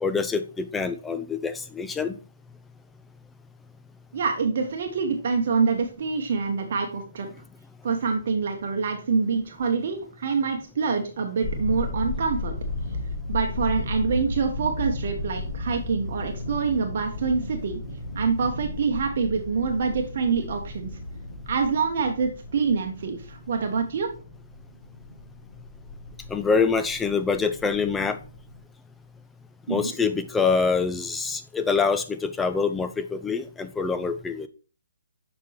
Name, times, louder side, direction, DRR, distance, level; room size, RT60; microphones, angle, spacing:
voice 1, 0.0-2.2 26.3-28.2 29.7-34.5, left 5 dB, 10° left, 8 dB, 0.5 m, -25 dB
voice 2, 4.1-7.3 7.8-12.6 13.3-17.8 18.1-20.9 21.5-24.1 29.7-29.9, right 5 dB, 45° right, 4 dB, 0.9 m, -26 dB
sound 1, 11.4-28.6, left 2 dB, 40° left, 3.9 m, -35 dB
6.7 x 5.2 x 3.2 m, 0.37 s
figure-of-eight pair, 135°, 0 cm